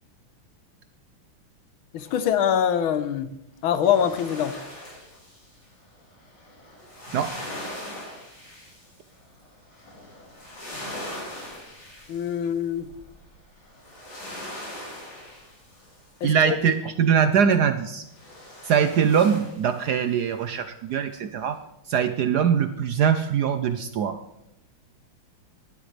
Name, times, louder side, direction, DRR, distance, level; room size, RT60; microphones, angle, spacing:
voice 1, 1.9-3.3 3.6-4.6 12.1-12.9 16.2-16.6, left 9 dB, 80° left, 12 dB, 1.6 m, -24 dB
sound 1, 2.0-2.6 3.7-16.5 18.1-20.2 20.6-20.7, left 1 dB, 55° left, 7.2 m, -41 dB
voice 2, 16.2-18.0 18.6-21.6 21.9-24.2, right 7 dB, 70° right, 9 dB, 1.0 m, -22 dB
18.0 x 12.0 x 3.3 m, 0.84 s
omnidirectional pair, 2.3 m